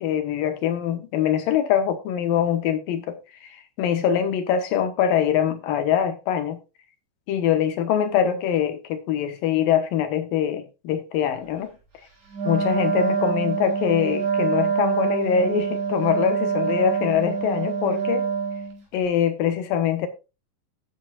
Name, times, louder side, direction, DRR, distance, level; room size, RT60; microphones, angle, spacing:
voice 1, 0.0-3.5 3.8-6.6 7.3-11.7 12.5-18.3 18.9-20.1, left 9 dB, 90° left, 3.0 m, -23 dB
Wind instrument woodwind instrument, 12.3-18.8, right 6 dB, 75° right, 7.0 m, -25 dB
17.5 x 7.8 x 2.4 m
omnidirectional pair, 3.9 m